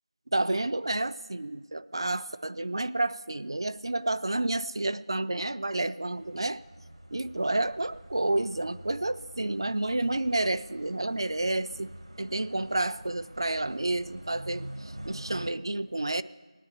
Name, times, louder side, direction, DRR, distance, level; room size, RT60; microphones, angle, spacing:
voice 1, 0.3-6.6 7.1-11.9 12.2-16.2, right 2 dB, 50° right, 15 dB, 0.4 m, -30 dB
sound 1, 6.1-15.5, right 1 dB, 70° right, 1.0 m, -46 dB
16.0 x 10.0 x 6.6 m, 1.4 s
figure-of-eight pair, 175°, 3 cm